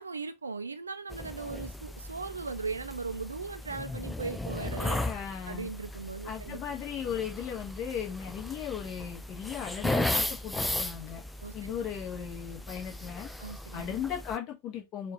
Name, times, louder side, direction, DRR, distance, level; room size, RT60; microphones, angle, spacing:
voice 1, 0.0-5.0 5.5-6.6 11.4-11.7 13.4-14.0, right 4 dB, 75° right, 0.3 m, -38 dB
sound 1, 1.1-14.4, left 1 dB, 5° left, 0.4 m, -36 dB
voice 2, 5.0-5.7 6.2-11.2 11.5-13.3 13.7-15.1, left 8 dB, 35° left, 1.2 m, -37 dB
4.5 x 2.5 x 2.8 m
figure-of-eight pair, 90°, 0 cm